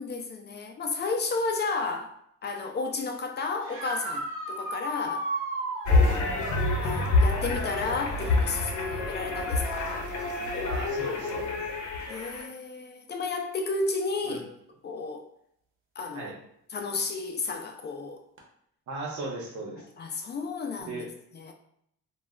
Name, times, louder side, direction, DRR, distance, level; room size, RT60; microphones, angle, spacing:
voice 1, 0.0-5.3 5.9-6.3 6.8-9.9 12.1-14.4 14.8-15.3 16.0-16.3 16.7-18.2 20.0-21.0 21.3-21.5, left 3 dB, 35° left, 0.4 m, -32 dB
sound 1, 3.6-6.6 9.9-10.0 12.0-12.1 18.4-18.5, right 2 dB, 45° right, 0.8 m, -34 dB
sound 2, 5.9-12.5, left 3 dB, 75° left, 0.7 m, -27 dB
voice 2, 10.6-11.6 14.2-14.4 16.1-16.4 18.9-19.8 20.8-21.1, right 2 dB, 75° right, 0.9 m, -37 dB
2.3 x 2.0 x 3.6 m
cardioid pair, 90°, 30 cm